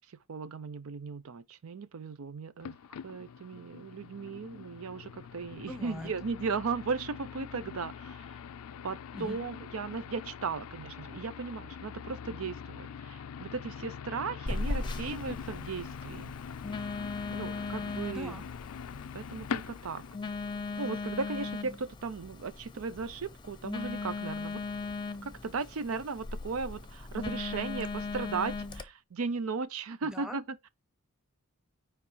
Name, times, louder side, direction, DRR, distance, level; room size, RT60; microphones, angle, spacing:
voice 1, 0.1-2.8 3.0-8.4 8.8-16.3 17.3-18.4 19.1-20.0 20.8-24.6 25.2-30.7, right 4 dB, 65° right, 0.5 m, -37 dB
sound 1, 2.6-20.2, left 7 dB, 75° left, 0.4 m, -43 dB
voice 2, 5.7-6.1 9.1-9.4 18.1-18.5 30.1-30.4, left 1 dB, 5° right, 1.0 m, -41 dB
Telephone, 14.5-28.8, left 3 dB, 20° left, 0.7 m, -38 dB
9.5 x 3.2 x 5.5 m
head